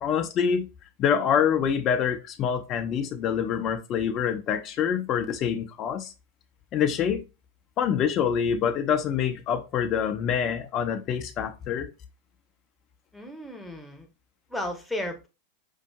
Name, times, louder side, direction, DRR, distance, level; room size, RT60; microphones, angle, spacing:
voice 1, 0.0-0.7 1.0-6.1 6.7-7.2 7.8-11.9, left 8 dB, 35° left, 0.5 m, -26 dB
voice 2, 13.1-14.1 14.5-15.3, left 1 dB, 5° left, 0.8 m, -34 dB
5.4 x 2.5 x 2.3 m
figure-of-eight pair, 90°, 0 cm